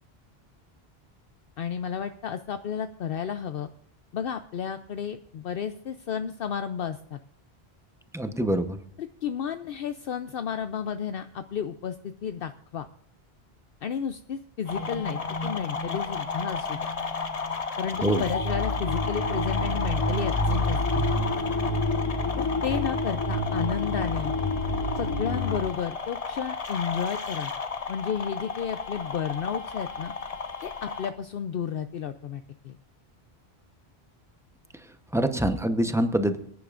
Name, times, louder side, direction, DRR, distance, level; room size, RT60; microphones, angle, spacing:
voice 1, 1.6-3.7 4.1-7.2 9.0-12.9 13.8-16.8 17.8-21.1 22.4-24.3 24.9-27.5 27.9-30.1 30.6-32.8, left 7 dB, 65° left, 9 dB, 0.8 m, -32 dB
voice 2, 8.1-8.8 18.0-18.2 35.1-36.4, right 1 dB, 5° right, 7 dB, 0.8 m, -25 dB
sound 1, 14.7-31.1, left 4 dB, 40° left, 0.9 m, -33 dB
sound 2, 14.7-17.5 17.8-25.6, left 1 dB, 20° left, 1.6 m, -29 dB
23.5 x 10.5 x 2.5 m, 0.65 s
omnidirectional pair, 1.1 m